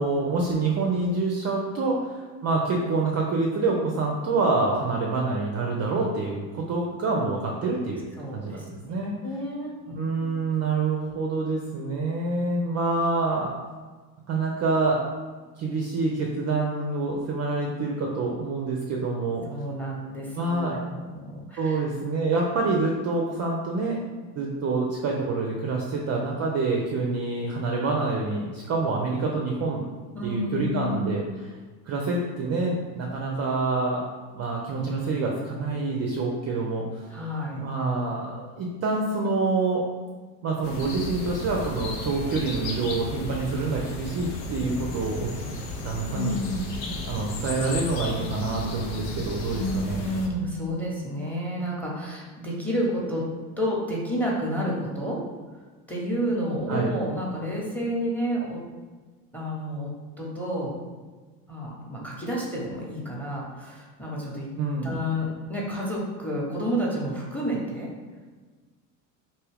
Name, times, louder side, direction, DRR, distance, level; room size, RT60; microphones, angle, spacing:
voice 1, 0.0-8.1 8.3-9.1 10.0-13.5 14.3-15.0 15.6-19.5 20.4-20.8 21.6-24.0 24.4-29.8 30.2-31.2 31.9-34.0 34.3-37.1 37.6-39.8 40.4-45.3 45.8-46.4 47.1-50.0 56.7-57.0 64.6-65.0, right 3 dB, 35° right, -1 dB, 0.4 m, -27 dB
voice 2, 8.2-8.9 9.2-10.4 19.5-21.8 30.1-31.1 37.1-37.6 46.1-46.7 49.5-53.3 53.6-55.2 55.9-58.6 59.3-60.7 61.5-64.5 64.8-67.9, equal, 5° left, -3 dB, 0.8 m, -30 dB
sound 1, 40.6-50.3, left 2 dB, 70° left, 0.6 m, -34 dB
2.6 x 2.3 x 3.4 m, 1.4 s
hypercardioid pair, 70°, 49 cm